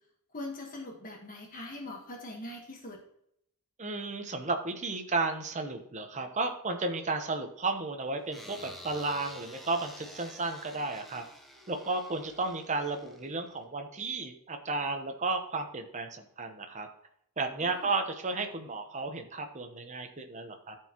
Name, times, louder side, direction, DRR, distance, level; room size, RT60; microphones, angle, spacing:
voice 1, 0.3-3.0 17.6-17.9, left 2 dB, 40° left, 1 dB, 1.4 m, -42 dB
voice 2, 3.8-11.2 11.7-16.9 17.4-20.8, right 3 dB, 35° right, 5 dB, 0.9 m, -33 dB
sound 1, 8.3-13.6, equal, ahead, 1.0 m, -49 dB
13.0 x 4.7 x 2.9 m, 0.72 s
head